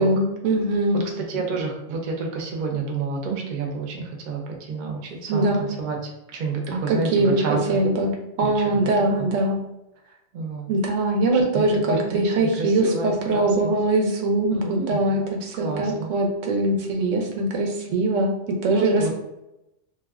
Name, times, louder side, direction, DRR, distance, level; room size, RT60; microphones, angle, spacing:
voice 1, 0.0-1.0 5.3-5.6 6.7-8.1 8.4-9.6 10.7-18.3 18.6-19.1, right 2 dB, 90° right, 1 dB, 1.0 m, -22 dB
voice 2, 0.9-6.0 6.3-7.8 8.4-8.7 9.2-9.3 10.3-10.7 11.5-13.7 14.5-15.0 15.6-16.1 18.7-19.1, right 4 dB, 50° right, 1 dB, 0.6 m, -29 dB
2.5 x 2.2 x 3.4 m, 0.90 s
omnidirectional pair, 1.3 m